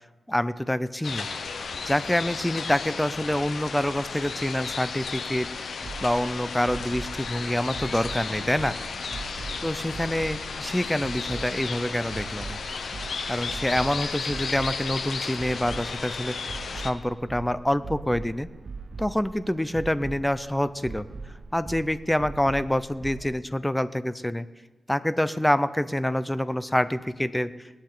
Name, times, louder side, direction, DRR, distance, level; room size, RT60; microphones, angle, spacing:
voice 1, 0.3-1.3 1.8-5.5 6.0-8.8 9.6-12.6 13.3-16.5 16.8-18.5 19.0-21.0 21.5-24.5 24.9-27.7, left 1 dB, 10° left, 14 dB, 0.6 m, -26 dB
sound 1, 1.0-16.9, left 5 dB, 80° left, 0.9 m, -34 dB
sound 2, 5.8-23.3, right 4 dB, 65° right, 0.6 m, -41 dB
20.5 x 8.8 x 3.9 m, 1.2 s
cardioid pair, 65°, 0 cm